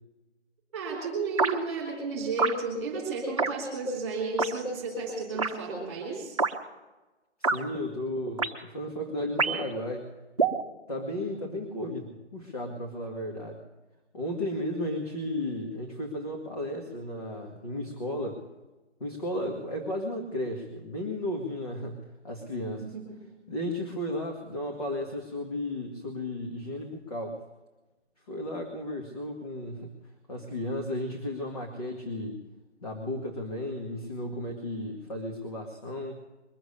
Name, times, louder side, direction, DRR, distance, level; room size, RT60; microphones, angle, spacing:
voice 1, 0.7-6.4 22.8-23.2, right 3 dB, 10° right, -3 dB, 3.2 m, -32 dB
sound 1, 1.4-1.6 2.4-2.6 3.4-3.5 4.4-4.5 5.4-5.5 6.4-6.5 7.4-7.6 8.4-8.5 9.4-9.7 10.4-10.6, right 4 dB, 30° right, 1.1 m, -26 dB
voice 2, 7.4-10.2 10.9-13.6 14.1-18.4 19.0-22.9 23.5-27.4 28.3-30.0 30.3-32.4 32.8-36.2, left 1 dB, 30° left, 0 dB, 2.1 m, -34 dB
22.5 x 7.8 x 6.7 m, 1.1 s
hypercardioid pair, 180°, 36 cm